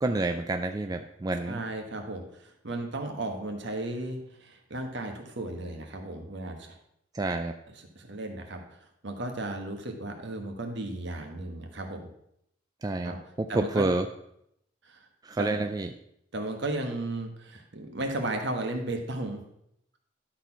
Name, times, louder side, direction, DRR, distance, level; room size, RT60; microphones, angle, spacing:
voice 1, 0.0-1.6 7.1-7.5 12.8-13.1 13.5-14.0 15.2-15.9, right 2 dB, 20° right, 6 dB, 0.4 m, -28 dB
voice 2, 1.4-6.8 7.7-12.0 13.0-13.2 13.5-13.9 14.8-15.1 15.4-15.6 16.3-19.4, right 2 dB, 60° right, 4 dB, 1.5 m, -35 dB
11.5 x 4.4 x 5.8 m, 0.75 s
head